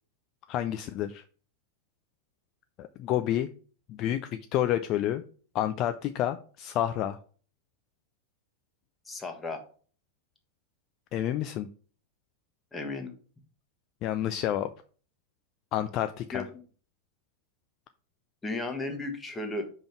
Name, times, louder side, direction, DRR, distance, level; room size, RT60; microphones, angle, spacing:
voice 1, 0.5-1.2 2.8-3.5 3.9-5.2 5.5-7.2 11.1-11.7 14.0-14.7 15.7-16.4, left 11 dB, 35° left, 10 dB, 0.4 m, -29 dB
voice 2, 9.1-9.6 12.7-13.1 16.3-16.4 18.4-19.7, left 2 dB, 15° left, 4 dB, 1.2 m, -34 dB
5.1 x 3.6 x 5.8 m, 0.42 s
figure-of-eight pair, 90°, 0 cm